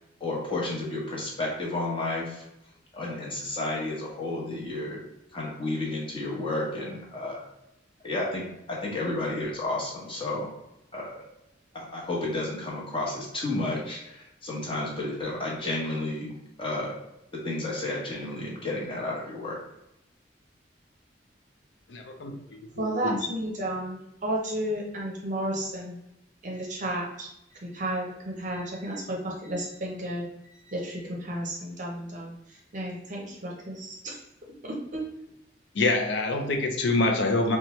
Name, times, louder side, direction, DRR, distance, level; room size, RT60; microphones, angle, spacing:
voice 1, 0.2-2.4 2.9-5.0 5.3-7.4 8.0-10.5 10.9-11.2 11.7-17.0 17.3-19.6, left 2 dB, 30° left, -4 dB, 1.1 m, -32 dB
voice 2, 21.9-23.2 35.7-37.6, left 2 dB, 70° left, 3 dB, 0.5 m, -26 dB
voice 3, 22.7-26.0 26.4-34.2 34.6-35.0, right 1 dB, 45° right, -1 dB, 0.6 m, -33 dB
4.2 x 2.2 x 3.0 m, 0.85 s
head